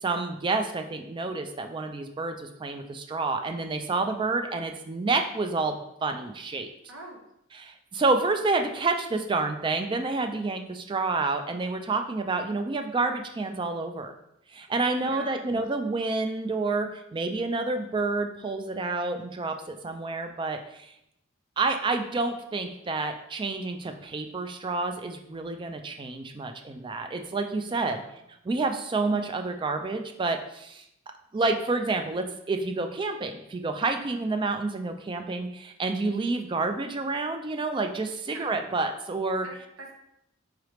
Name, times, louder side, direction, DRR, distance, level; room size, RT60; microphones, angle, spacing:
voice 1, 0.0-6.7 7.5-14.1 14.5-20.9 21.6-28.0 28.4-30.8 31.3-39.5, right 3 dB, 25° right, 6 dB, 0.3 m, -29 dB
voice 2, 6.9-7.2 14.9-15.5 27.7-28.2 38.3-38.4 39.4-39.9, right 2 dB, 90° right, 0 dB, 1.0 m, -45 dB
4.8 x 3.3 x 3.0 m, 0.80 s
head